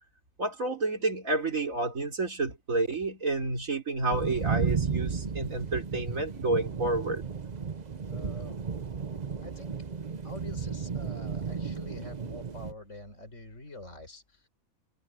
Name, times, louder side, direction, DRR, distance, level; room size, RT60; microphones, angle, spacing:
voice 1, 0.4-7.2, right 2 dB, 70° right, 4.1 m, -30 dB
sound 1, 4.1-12.7, right 5 dB, 35° right, 0.9 m, -34 dB
voice 2, 8.1-8.6 9.4-9.7 10.2-14.5, left 1 dB, 60° left, 5.7 m, -46 dB
omnidirectional pair, 1.4 m